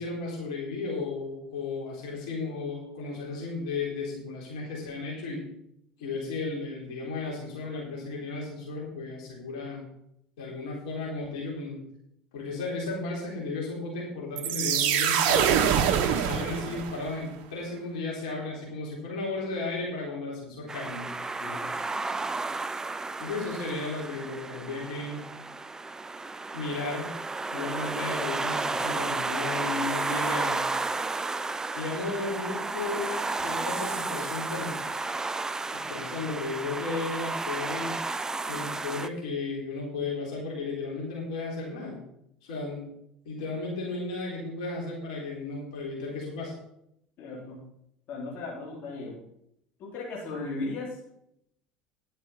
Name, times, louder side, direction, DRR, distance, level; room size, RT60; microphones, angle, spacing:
voice 1, 0.0-5.4 6.0-9.8 10.4-11.8 12.3-15.6 16.1-21.1 23.2-25.2 26.5-27.1 27.5-30.7 31.8-34.8 35.7-38.2 38.5-42.0 42.4-42.9 43.3-46.5, left 3 dB, 70° left, -3 dB, 3.9 m, -34 dB
sound 1, 14.4-17.2, right 8 dB, 55° right, 1.2 m, -24 dB
sound 2, 20.7-39.1, right 3 dB, 15° right, 0.6 m, -32 dB
voice 2, 47.2-47.6 48.1-49.2 49.8-51.0, left 3 dB, 50° left, -3 dB, 3.8 m, -36 dB
11.0 x 7.3 x 5.7 m, 0.75 s
figure-of-eight pair, 70°, 4 cm